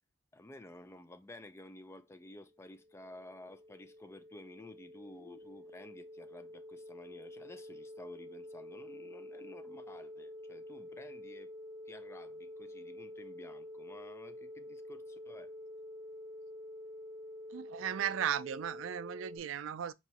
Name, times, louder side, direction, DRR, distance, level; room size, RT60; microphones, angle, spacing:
voice 1, 0.3-11.5 11.9-15.5, left 1 dB, 15° left, 0.4 m, -53 dB
sound 1, 2.4-19.4, left 1 dB, 30° right, 1.0 m, -48 dB
voice 2, 17.5-19.9, right 9 dB, 75° right, 0.3 m, -36 dB
4.6 x 3.0 x 2.7 m
head